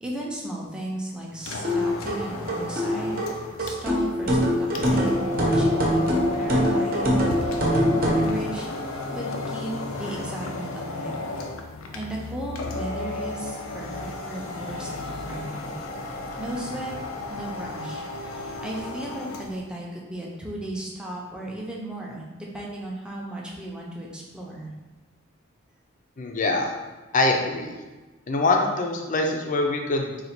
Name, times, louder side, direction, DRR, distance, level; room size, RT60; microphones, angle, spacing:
voice 1, 0.0-3.3 3.6-11.3 11.9-15.7 16.4-16.9 17.3-24.7, right 1 dB, 5° right, -3 dB, 0.6 m, -35 dB
sound 1, 1.4-19.6, left 2 dB, 90° left, 0.5 m, -33 dB
sound 2, 1.6-8.3, equal, 45° right, 0.8 m, -23 dB
voice 2, 26.2-26.7 27.1-27.7 28.3-30.2, left 2 dB, 40° left, 2 dB, 0.5 m, -24 dB
3.9 x 2.4 x 4.4 m, 1.2 s
head